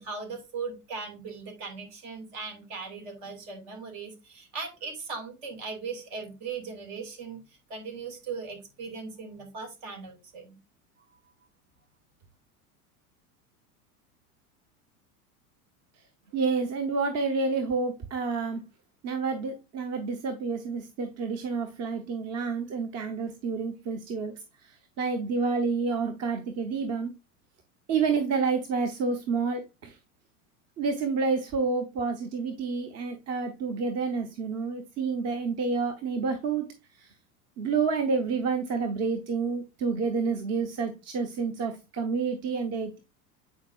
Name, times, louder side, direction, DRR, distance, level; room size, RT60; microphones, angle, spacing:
voice 1, 0.0-7.4 7.7-10.6, right 4 dB, 55° right, 2.6 m, -38 dB
voice 2, 16.3-18.6 19.0-24.3 24.6-27.1 27.9-30.0 30.8-36.7 37.0-37.1 37.6-43.0, right 4 dB, 35° right, 1.0 m, -29 dB
8.4 x 4.8 x 2.5 m
hypercardioid pair, 90°, 45 cm